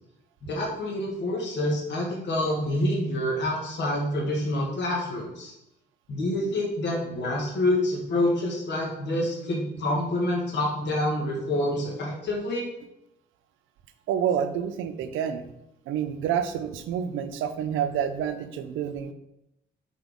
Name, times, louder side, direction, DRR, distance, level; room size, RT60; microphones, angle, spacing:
voice 1, 0.4-5.5 6.1-12.7, left 1 dB, 60° left, -2 dB, 1.5 m, -27 dB
voice 2, 14.1-15.5 15.9-19.1, right 8 dB, 90° right, 10 dB, 0.6 m, -28 dB
5.9 x 4.5 x 3.6 m, 0.86 s
cardioid pair, 90°, 20 cm